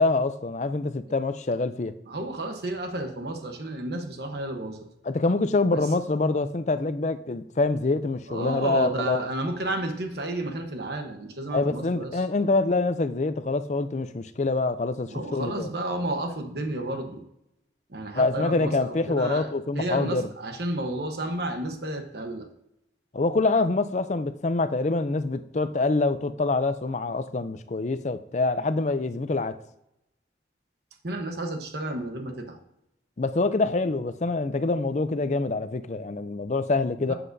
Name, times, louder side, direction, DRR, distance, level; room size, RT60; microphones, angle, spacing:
voice 1, 0.0-1.9 5.0-9.3 11.5-15.7 18.2-20.3 23.1-29.5 33.2-37.1, left 3 dB, 40° left, 0.5 m, -25 dB
voice 2, 2.1-4.8 5.7-5.9 8.3-12.2 15.1-17.2 17.9-19.5 19.7-22.5 31.0-32.6 37.1-37.2, right 1 dB, 60° right, 1.1 m, -31 dB
12.5 x 7.7 x 2.7 m
head